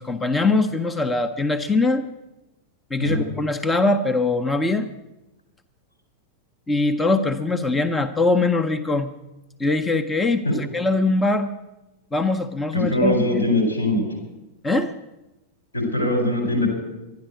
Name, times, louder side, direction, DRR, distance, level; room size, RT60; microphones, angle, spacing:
voice 1, 0.0-2.1 2.9-4.9 6.7-9.1 9.6-11.5 12.1-13.4 14.6-14.9, left 3 dB, 10° left, 7 dB, 0.7 m, -22 dB
voice 2, 12.7-14.1 15.7-16.7, left 1 dB, 80° left, 1 dB, 4.8 m, -21 dB
12.0 x 10.5 x 8.1 m, 0.98 s
figure-of-eight pair, 90°, 0 cm